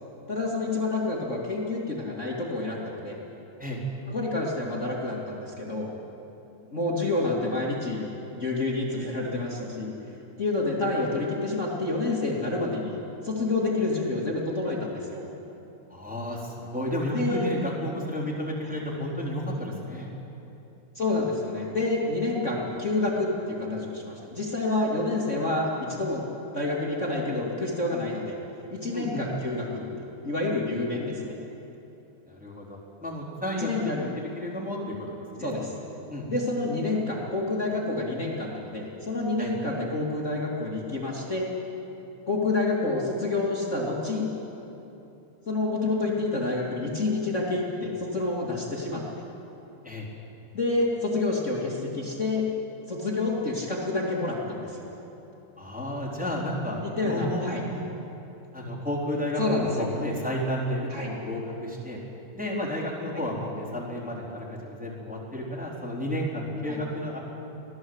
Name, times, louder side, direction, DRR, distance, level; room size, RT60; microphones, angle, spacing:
voice 1, 0.3-3.2 4.1-5.9 6.7-9.9 10.4-13.0 13.2-15.2 17.1-17.5 18.6-18.7 20.9-26.2 26.5-28.4 28.7-31.3 33.6-34.1 35.4-35.7 36.3-41.5 42.3-44.3 45.5-49.0 50.5-52.5 52.9-54.9 56.8-57.6 59.4-59.9 60.9-61.1 66.7-66.8, left 2 dB, 25° left, -3 dB, 2.1 m, -28 dB
voice 2, 15.9-20.1 28.9-29.2 32.3-34.9 35.3-35.5 36.1-36.2 39.4-39.5 49.8-50.1 55.6-57.8 58.5-60.9 61.2-62.0 62.3-67.2, equal, ahead, -5 dB, 3.5 m, -32 dB
24.5 x 17.5 x 8.0 m, 3.0 s
omnidirectional pair, 4.3 m